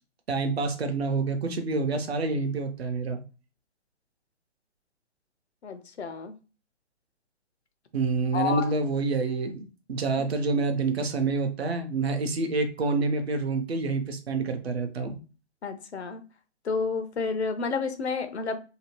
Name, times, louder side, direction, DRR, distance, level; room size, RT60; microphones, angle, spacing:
voice 1, 0.3-3.2 7.9-15.2, right 3 dB, 65° right, 5 dB, 0.7 m, -27 dB
voice 2, 5.6-6.4 8.3-8.7 15.6-16.2 16.6-18.6, left 5 dB, 70° left, 8 dB, 0.6 m, -30 dB
2.8 x 2.2 x 2.9 m, 0.33 s
figure-of-eight pair, 130°, 34 cm